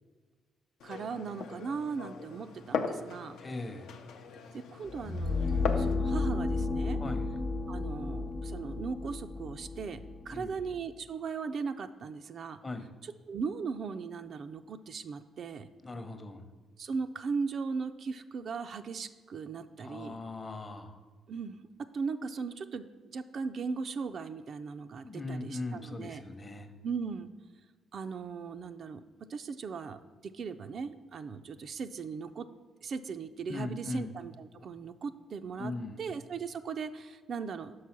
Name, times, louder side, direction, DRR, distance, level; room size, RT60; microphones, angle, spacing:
Glass, 0.8-5.9, left 5 dB, 80° left, 0.5 m, -39 dB
voice 1, 0.8-3.4 4.5-7.0 7.7-10.0 10.3-12.6 13.0-15.7 16.8-20.2 21.3-21.6 21.9-22.9 23.1-26.2 26.8-27.3 27.9-29.0 29.3-30.0 30.2-32.5 32.8-37.8, right 5 dB, 55° right, 9 dB, 0.3 m, -38 dB
voice 2, 3.4-3.9 7.0-7.3 10.3-10.5 12.6-12.9 15.8-16.5 19.8-21.0 25.0-26.7 33.5-34.1 35.6-36.0, left 2 dB, 25° left, 7 dB, 0.7 m, -39 dB
sound 1, 4.9-10.8, left 3 dB, 45° left, 1.0 m, -33 dB
6.1 x 4.7 x 5.9 m, 1.4 s
cardioid pair, 90°, 0 cm